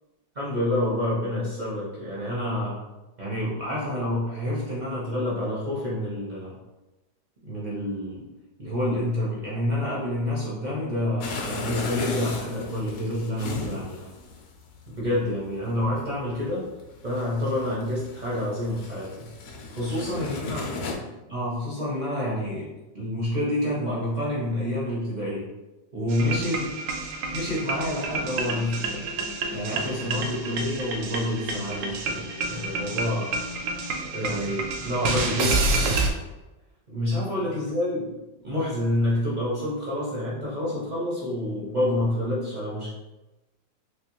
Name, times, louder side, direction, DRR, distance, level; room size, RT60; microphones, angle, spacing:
voice 1, 0.3-2.8 3.2-6.5 7.4-8.2 8.6-14.1 14.9-16.7 17.0-19.3 19.7-20.6 21.3-22.7 22.9-25.5 25.9-26.6 27.3-29.1 29.5-33.3 34.1-35.6 36.9-38.1 38.4-42.9, left 1 dB, 60° right, -6 dB, 0.4 m, -28 dB
sound 1, 11.2-20.9, left 3 dB, 65° left, 1.0 m, -35 dB
sound 2, 26.1-36.1, right 3 dB, 80° right, 1.3 m, -29 dB
3.3 x 3.2 x 2.9 m, 1.1 s
omnidirectional pair, 2.0 m